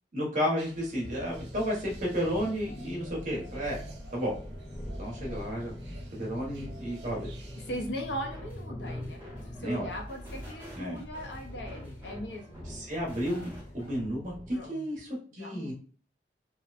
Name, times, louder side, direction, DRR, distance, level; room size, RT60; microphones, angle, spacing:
voice 1, 0.1-3.8 4.1-4.3 5.0-5.7 6.2-7.3 9.6-9.9 10.8-11.0 12.6-15.7, equal, 45° right, -3 dB, 1.0 m, -32 dB
sound 1, 0.6-7.9, right 1 dB, 80° right, 0.6 m, -52 dB
sound 2, 1.0-14.7, equal, 25° left, 0.7 m, -43 dB
voice 2, 7.7-9.2 9.6-12.7 14.5-14.8 15.3-15.7, equal, 75° left, 2 dB, 0.6 m, -39 dB
sound 3, 8.3-13.9, left 1 dB, 10° right, 0.8 m, -48 dB
2.8 x 2.1 x 2.4 m, 0.40 s
head